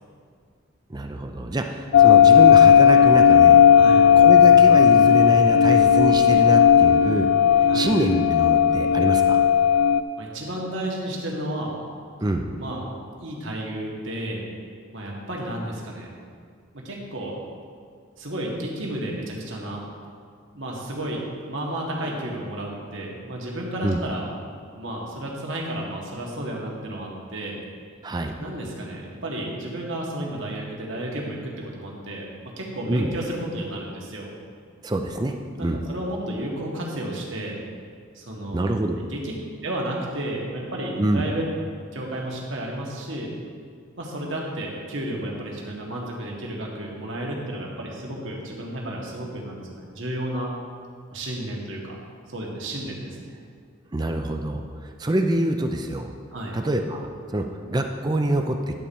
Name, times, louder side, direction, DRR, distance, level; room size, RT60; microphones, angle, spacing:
voice 1, 0.9-3.6 4.1-7.3 7.6-9.4 12.2-12.5 23.8-24.0 28.0-28.3 32.9-33.1 34.8-35.3 35.6-35.8 38.5-39.0 41.0-41.2 53.9-56.1 56.5-58.8, right 1 dB, 20° right, 5 dB, 0.5 m, -25 dB
sound 1, 1.9-10.0, left 8 dB, 65° left, 0.3 m, -14 dB
voice 2, 3.7-4.0 7.7-8.0 10.2-11.7 12.6-12.8 13.2-14.4 14.9-16.1 16.7-17.4 18.2-19.8 20.5-21.2 21.5-24.3 24.8-27.6 28.4-34.3 35.6-37.6 38.2-38.7 39.1-39.2 39.6-41.4 41.9-43.3 44.0-50.5 51.1-52.0 52.3-53.4 56.3-56.5, right 1 dB, 70° right, -2 dB, 1.8 m, -32 dB
11.0 x 4.4 x 7.0 m, 2.1 s
head